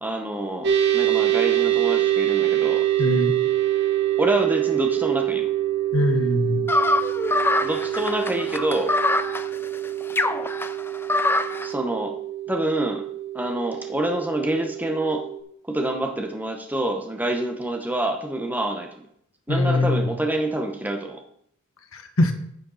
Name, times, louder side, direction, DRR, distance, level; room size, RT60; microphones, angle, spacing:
voice 1, 0.0-2.8 4.2-5.5 7.6-8.9 11.6-12.2 12.5-13.0 13.3-15.3 15.7-18.9 19.5-21.2, right 1 dB, 10° right, 3 dB, 0.9 m, -26 dB
sound 1, 0.6-15.4, right 12 dB, 55° right, 1.4 m, -25 dB
voice 2, 3.0-3.3 5.9-6.6 19.5-20.1 21.9-22.3, left 2 dB, 85° left, 6 dB, 1.5 m, -22 dB
sound 2, 6.7-11.7, left 2 dB, 10° left, 0.5 m, -24 dB
9.8 x 8.9 x 4.1 m, 0.69 s
head